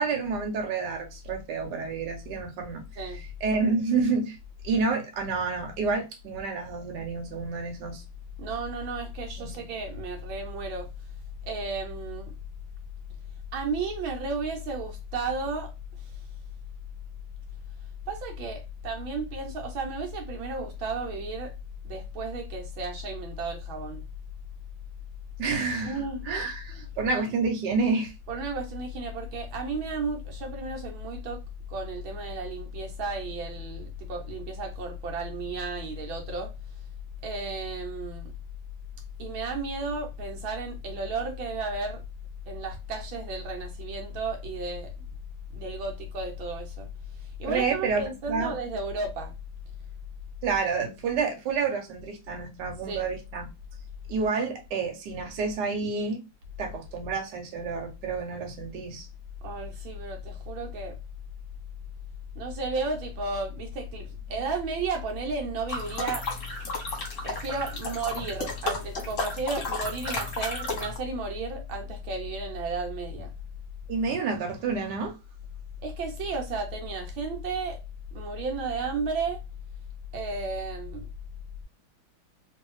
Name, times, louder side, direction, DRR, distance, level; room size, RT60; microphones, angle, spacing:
voice 1, 0.0-2.8 3.1-4.4 4.6-8.0 9.4-9.6 25.4-26.0 26.3-28.1 47.5-48.0 48.3-48.5 50.4-53.5 54.1-56.2 56.6-59.1 73.9-75.2, right 4 dB, 65° right, 1.4 m, -29 dB
voice 2, 8.4-10.9 11.4-12.3 13.5-15.7 18.1-21.5 21.8-24.0 25.8-26.3 26.7-26.9 28.3-31.4 31.7-36.5 37.2-38.3 39.2-42.0 42.5-44.9 45.5-46.9 47.4-49.3 52.8-53.1 59.4-61.0 62.4-66.3 67.2-73.3 75.8-77.8 78.1-79.4 80.1-81.1, right 2 dB, 80° right, 1.5 m, -33 dB
sound 1, 65.7-71.0, left 2 dB, 45° left, 1.1 m, -33 dB
3.2 x 2.7 x 3.1 m
omnidirectional pair, 2.2 m